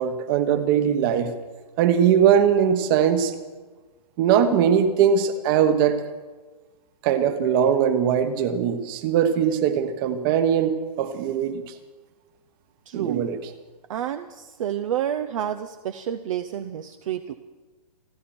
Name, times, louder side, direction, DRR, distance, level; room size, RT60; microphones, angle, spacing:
voice 1, 0.0-1.3 1.8-3.3 4.2-6.0 7.0-11.7 12.9-13.4, right 8 dB, 35° right, 10 dB, 1.3 m, -21 dB
voice 2, 12.9-13.3 13.9-17.3, right 10 dB, 55° right, 8 dB, 0.8 m, -29 dB
29.0 x 11.0 x 4.3 m, 1.3 s
hypercardioid pair, 150°, 20 cm